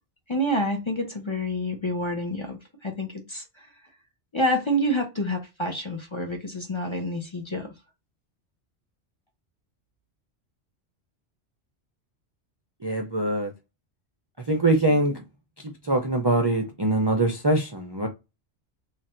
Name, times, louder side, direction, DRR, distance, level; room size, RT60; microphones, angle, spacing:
voice 1, 0.3-3.7 4.3-7.7, equal, 30° left, 0.7 m, -28 dB
voice 2, 12.8-13.5 14.4-15.2 15.6-18.1, right 2 dB, 30° right, 0.5 m, -23 dB
3.2 x 2.5 x 4.3 m
omnidirectional pair, 1.2 m